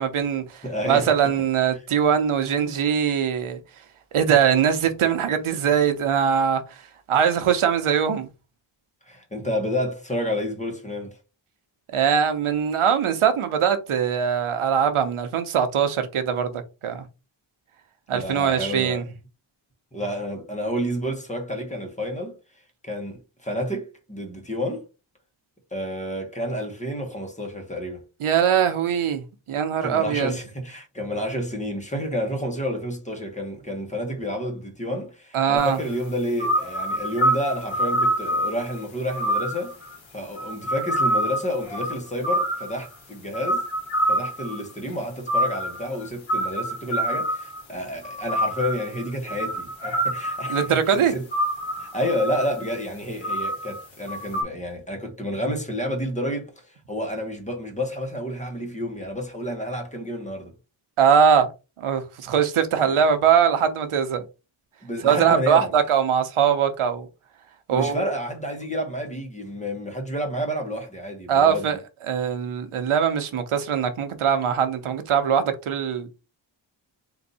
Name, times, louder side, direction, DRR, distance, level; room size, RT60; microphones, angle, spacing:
voice 1, 0.0-3.6 4.1-6.6 7.1-8.3 11.9-16.5 16.8-17.0 18.1-19.0 28.2-30.3 35.3-35.8 50.5-51.1 61.0-61.5 61.8-64.2 65.0-67.1 67.7-68.1 71.3-71.8 72.1-76.1, right 8 dB, 85° right, 0.9 m, -21 dB
voice 2, 0.6-1.3 9.1-11.2 18.1-19.0 19.9-22.4 22.8-24.9 25.7-28.0 29.8-39.8 40.1-43.7 44.1-51.2 51.8-60.5 62.8-63.0 64.8-65.7 67.7-71.7, equal, 15° left, 1.1 m, -30 dB
sound 1, 35.6-35.7 36.4-38.8 39.1-40.0 40.4-42.9 43.3-44.7 45.3-47.6 48.0-50.7 51.3-52.7 53.2-53.8 54.1-54.4, right 1 dB, 65° left, 1.5 m, -26 dB
3.9 x 2.6 x 4.1 m
wide cardioid pair, 150°, 49 cm